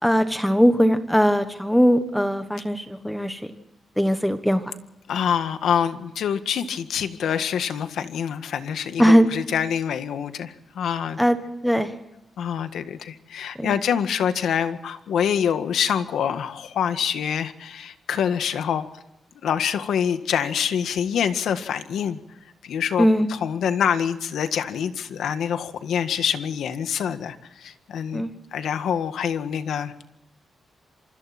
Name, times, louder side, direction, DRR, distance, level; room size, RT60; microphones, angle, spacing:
voice 1, 0.0-3.4 4.0-4.6 9.0-9.3 11.2-11.4 11.6-11.9 13.6-13.7 23.0-23.3 28.1-28.3, equal, ahead, 9 dB, 1.3 m, -19 dB
voice 2, 5.1-11.2 12.4-18.9 19.4-22.2 22.6-28.3 28.5-29.9, left 8 dB, 85° left, 9 dB, 1.7 m, -26 dB
27.0 x 25.0 x 4.4 m, 0.87 s
wide cardioid pair, 170°, 0 cm